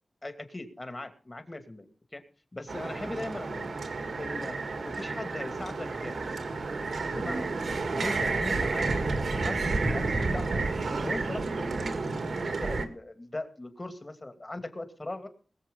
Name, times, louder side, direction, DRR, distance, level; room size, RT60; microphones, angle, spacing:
voice 1, 0.2-1.9 2.1-2.2 2.5-3.7 4.2-4.6 4.8-6.2 6.8-7.5 7.9-10.5 11.0-15.3, left 2 dB, 25° left, 8 dB, 2.4 m, -39 dB
sound 1, 2.7-12.9, right 3 dB, 75° right, 1.8 m, -31 dB
21.0 x 7.7 x 5.5 m, 0.40 s
wide cardioid pair, 90°, 0 cm